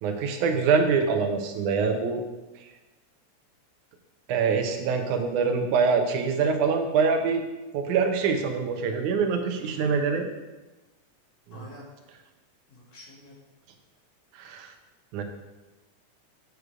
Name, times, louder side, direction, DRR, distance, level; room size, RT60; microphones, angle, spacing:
voice 1, 0.0-2.2 4.3-7.4 7.7-10.3 14.4-14.7 15.1-15.2, right 5 dB, 80° right, 5 dB, 2.3 m, -24 dB
voice 2, 9.6-10.3 11.5-11.9 12.7-13.4, left 2 dB, 80° left, -4 dB, 3.9 m, -47 dB
8.2 x 6.7 x 4.9 m, 1.1 s
omnidirectional pair, 3.5 m